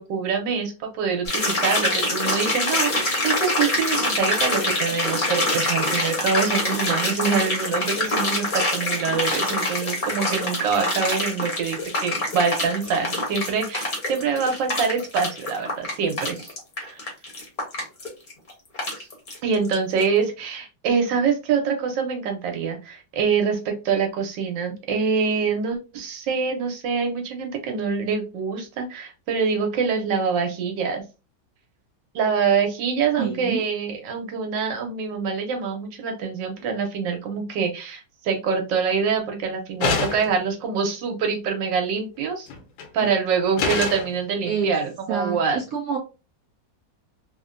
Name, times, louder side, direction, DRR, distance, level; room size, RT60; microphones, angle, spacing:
voice 1, 0.0-16.5 16.8-17.0 19.0-19.1 19.4-31.0 32.1-42.5 42.9-45.6, right 5 dB, 75° right, 4 dB, 1.4 m, -25 dB
sound 1, 1.3-19.7 20.0-20.1, left 2 dB, 40° left, 0.7 m, -25 dB
voice 2, 33.2-33.6 44.4-44.7 45.1-46.0, right 6 dB, 90° right, 1 dB, 0.7 m, -27 dB
sound 2, 39.8-40.4 42.5-42.9 43.6-44.1, left 5 dB, 80° left, 1.3 m, -25 dB
3.3 x 2.1 x 2.4 m, 0.30 s
omnidirectional pair, 2.1 m